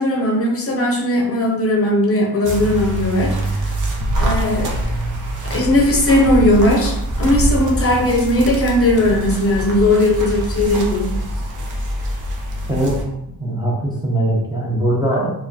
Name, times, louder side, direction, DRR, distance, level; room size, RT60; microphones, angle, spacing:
voice 1, 0.0-3.6 4.2-4.8 5.4-11.1, left 1 dB, 35° left, 0 dB, 0.7 m, -17 dB
sound 1, 2.4-13.0, right 1 dB, 50° right, 0.7 m, -24 dB
voice 2, 12.7-13.0 13.4-15.3, right 1 dB, 10° right, -4 dB, 0.5 m, -20 dB
4.6 x 2.3 x 2.7 m, 0.82 s
cardioid pair, 145°, 40 cm